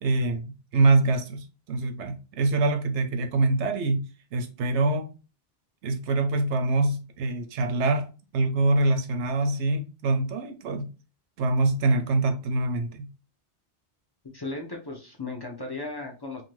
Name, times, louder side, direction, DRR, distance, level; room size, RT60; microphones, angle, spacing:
voice 1, 0.0-5.1 5.8-10.9 11.4-13.1, right 2 dB, 80° right, 0.9 m, -25 dB
voice 2, 14.2-16.4, left 3 dB, 35° left, 0.4 m, -36 dB
2.6 x 2.5 x 3.0 m
omnidirectional pair, 1.2 m